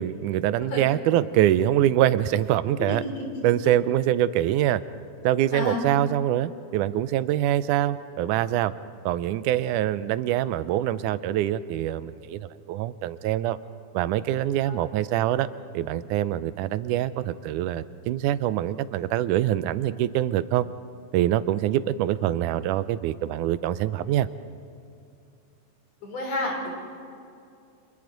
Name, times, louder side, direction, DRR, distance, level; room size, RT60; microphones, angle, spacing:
voice 1, 0.0-3.0 3.4-4.8 5.2-8.7 9.1-13.6 13.9-15.5 15.7-20.7 21.1-24.3, right 12 dB, 85° right, 14 dB, 2.1 m, -24 dB
voice 2, 2.8-3.3 5.5-5.8 14.7-14.8 26.0-26.7, left 2 dB, 55° left, 1 dB, 4.6 m, -30 dB
30.0 x 26.5 x 4.0 m, 2.5 s
omnidirectional pair, 3.6 m